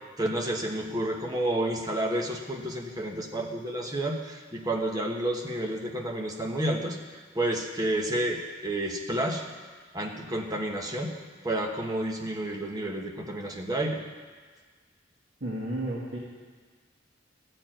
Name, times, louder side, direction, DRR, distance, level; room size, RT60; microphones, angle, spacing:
voice 1, 0.2-7.0 7.3-9.4 9.9-11.1 11.4-14.0, right 1 dB, 20° right, 1 dB, 1.2 m, -30 dB
voice 2, 15.4-16.2, right 1 dB, 70° right, -6 dB, 1.8 m, -32 dB
14.0 x 4.6 x 8.9 m, 1.5 s
head